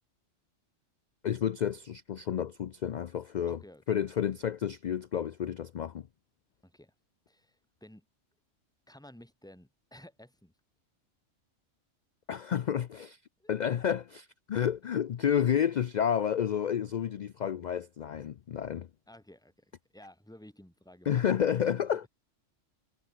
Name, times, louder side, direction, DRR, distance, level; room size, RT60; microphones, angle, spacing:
voice 1, 1.2-3.6 3.9-6.1 12.3-13.2 13.5-18.9 21.1-22.1, left 9 dB, 75° left, 0.4 m, -30 dB
voice 2, 3.5-3.8 6.6-6.9 7.3-8.1 8.9-10.5 13.4-13.5 19.1-21.3 21.6-21.7 22.0-22.1, left 1 dB, 5° left, 3.0 m, -54 dB
omnidirectional pair, 1.3 m